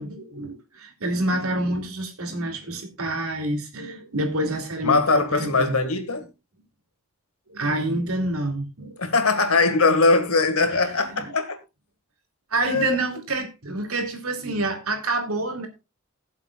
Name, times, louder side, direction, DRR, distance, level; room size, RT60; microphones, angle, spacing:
voice 1, 0.0-5.8 7.5-9.0 10.7-11.3 12.5-15.7, right 2 dB, 85° right, 2.6 m, -28 dB
voice 2, 4.8-6.3 9.0-11.6 12.6-13.0, left 3 dB, 85° left, 1.8 m, -21 dB
20.0 x 7.3 x 2.4 m
head